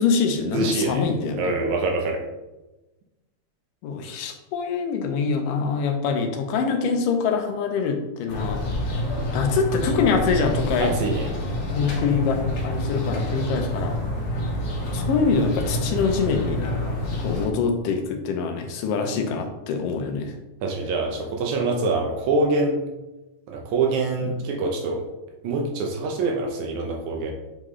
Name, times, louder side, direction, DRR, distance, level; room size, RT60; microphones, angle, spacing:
voice 1, 0.0-1.5 3.8-8.6 9.3-11.0 11.7-14.0 14.9-16.7 17.2-20.3 24.2-24.4, left 5 dB, 90° left, 5 dB, 2.4 m, -24 dB
voice 2, 0.5-2.2 10.8-11.3 20.6-22.8 23.5-25.0 25.4-27.3, right 3 dB, 75° right, 2 dB, 1.9 m, -25 dB
sound 1, 8.3-17.5, left 1 dB, 60° left, 2.2 m, -27 dB
7.9 x 3.8 x 3.1 m, 1.0 s
omnidirectional pair, 3.7 m